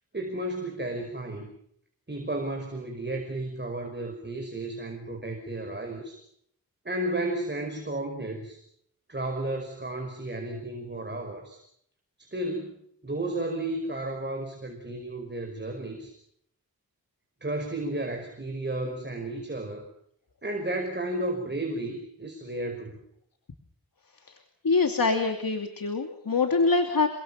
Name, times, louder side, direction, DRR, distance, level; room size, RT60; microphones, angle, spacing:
voice 1, 0.1-1.5 2.1-6.2 6.8-8.6 9.1-11.6 12.2-12.8 13.0-16.1 17.4-19.9 20.4-23.0, right 1 dB, 30° right, 4 dB, 5.5 m, -33 dB
voice 2, 24.6-27.1, left 4 dB, 65° left, 5 dB, 2.7 m, -24 dB
29.5 x 24.5 x 5.8 m, 0.69 s
wide cardioid pair, 85°, 37 cm